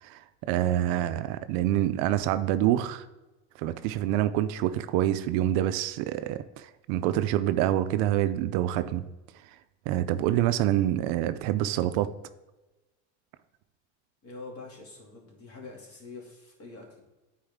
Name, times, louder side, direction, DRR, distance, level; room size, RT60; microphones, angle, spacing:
voice 1, 0.0-3.1 3.6-9.1 9.9-12.1, right 13 dB, 60° right, 12 dB, 0.5 m, -26 dB
voice 2, 14.2-17.0, left 3 dB, 40° left, -1 dB, 2.3 m, -45 dB
8.7 x 4.7 x 3.6 m, 1.1 s
supercardioid pair, 115°, 38 cm